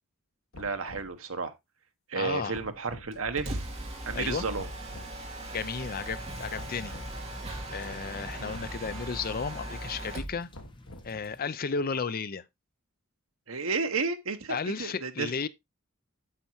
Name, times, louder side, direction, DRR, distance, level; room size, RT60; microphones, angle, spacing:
sound 1, 0.5-1.2 2.5-3.1 4.6-5.1 6.6-7.1 8.5-9.1 10.5-11.3, left 1 dB, 75° left, 1.5 m, -47 dB
voice 1, 0.6-1.5 2.1-3.6 4.1-4.7 13.5-15.3, right 4 dB, 75° right, 1.3 m, -32 dB
voice 2, 2.1-2.6 4.1-4.4 5.5-6.9 7.7-10.5 11.0-12.4 14.5-15.5, left 5 dB, 45° left, 0.6 m, -33 dB
Mechanisms, 3.1-10.4, right 1 dB, 30° right, 2.4 m, -39 dB
sound 2, 5.8-11.4, left 1 dB, 25° left, 1.3 m, -49 dB
8.9 x 7.6 x 2.9 m
head